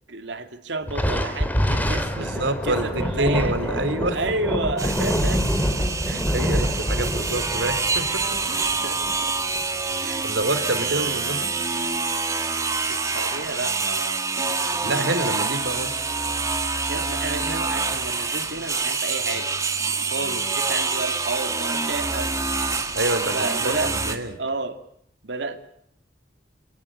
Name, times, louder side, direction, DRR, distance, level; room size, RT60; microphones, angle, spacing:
voice 1, 0.1-3.8 4.1-5.4 5.8-5.9 6.4-6.7 8.5-9.4 10.0-10.3 10.7-11.5 12.9-15.1 16.9-19.5 20.1-22.3 22.7-23.0 23.3-23.9 24.4-24.8 25.2-25.6, right 3 dB, 75° right, 7 dB, 2.5 m, -32 dB
Thunder, 0.9-9.6, equal, 10° left, 2.3 m, -26 dB
voice 2, 2.2-4.2 6.1-8.4 10.2-11.5 14.8-16.0 22.9-24.3, right 1 dB, 90° right, 10 dB, 3.7 m, -27 dB
sound 1, 4.8-24.2, right 4 dB, 20° right, 2.1 m, -26 dB
28.0 x 18.5 x 6.5 m, 0.68 s
head